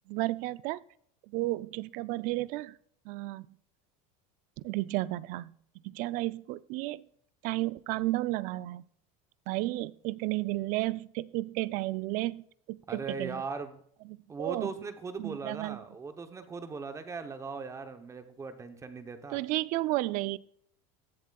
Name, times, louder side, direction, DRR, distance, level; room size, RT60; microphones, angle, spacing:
voice 1, 0.1-0.8 1.3-2.8 3.1-3.5 4.6-5.5 5.9-7.0 7.4-8.8 9.5-12.4 12.7-13.4 14.1-14.7 15.2-15.8 19.3-20.4, right 18 dB, 50° right, 19 dB, 0.4 m, -32 dB
voice 2, 12.9-13.8 14.3-19.4, right 4 dB, 15° right, 9 dB, 0.8 m, -39 dB
16.0 x 7.2 x 2.3 m, 0.65 s
cardioid pair, 150°, 18 cm